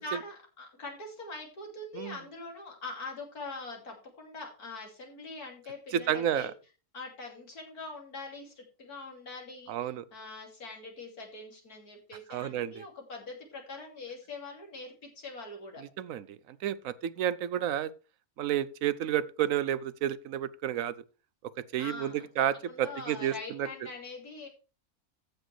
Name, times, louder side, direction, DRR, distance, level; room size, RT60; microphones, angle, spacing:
voice 1, 0.0-6.5 6.9-15.8 21.8-24.5, left 3 dB, 90° left, 3.3 m, -43 dB
voice 2, 5.9-6.5 9.7-10.0 12.3-12.8 15.8-17.9 18.4-20.9 21.7-23.7, right 10 dB, 70° right, 1.0 m, -31 dB
14.5 x 6.2 x 3.3 m
omnidirectional pair, 1.6 m